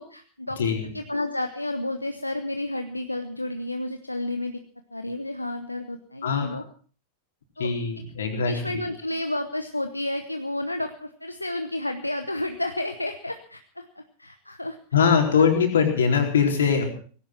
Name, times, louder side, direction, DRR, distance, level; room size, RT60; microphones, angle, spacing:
voice 1, 0.0-0.6 0.9-4.6 4.9-6.6 7.6-7.7 8.4-14.8 15.3-15.5, left 1 dB, 85° left, 8 dB, 1.0 m, -31 dB
voice 2, 0.6-0.9 6.2-6.6 7.6-8.8 14.9-16.8, left 6 dB, 65° left, 3 dB, 4.2 m, -22 dB
18.5 x 16.5 x 4.5 m, 0.41 s
figure-of-eight pair, 90°, 0 cm